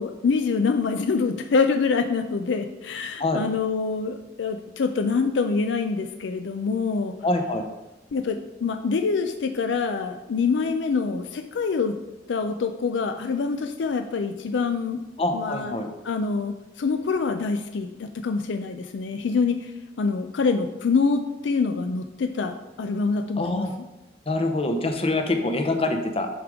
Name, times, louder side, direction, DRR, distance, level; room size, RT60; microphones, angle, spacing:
voice 1, 0.0-7.2 8.1-12.0 12.3-15.0 15.3-15.8 16.0-19.7 20.0-23.7, left 4 dB, 75° left, 7 dB, 0.4 m, -25 dB
voice 2, 7.2-7.7 15.2-15.9 23.4-23.7 24.3-26.3, left 2 dB, 35° left, 5 dB, 0.8 m, -25 dB
8.0 x 5.1 x 3.6 m, 1.0 s
head